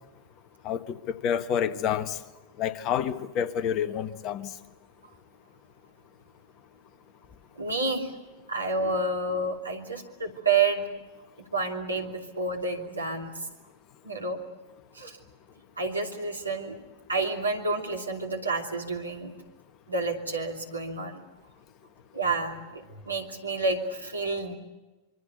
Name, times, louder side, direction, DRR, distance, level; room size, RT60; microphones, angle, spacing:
voice 1, 0.6-2.2 2.6-4.5, left 8 dB, 35° left, 14 dB, 1.3 m, -28 dB
voice 2, 7.6-8.1 8.5-10.9 11.4-13.3 14.0-14.4 14.9-15.2 15.8-16.8 17.1-19.3 19.9-21.2 22.1-24.6, right 3 dB, 80° right, 2 dB, 2.9 m, -29 dB
25.5 x 24.0 x 8.2 m, 1.1 s
figure-of-eight pair, 90°, 0 cm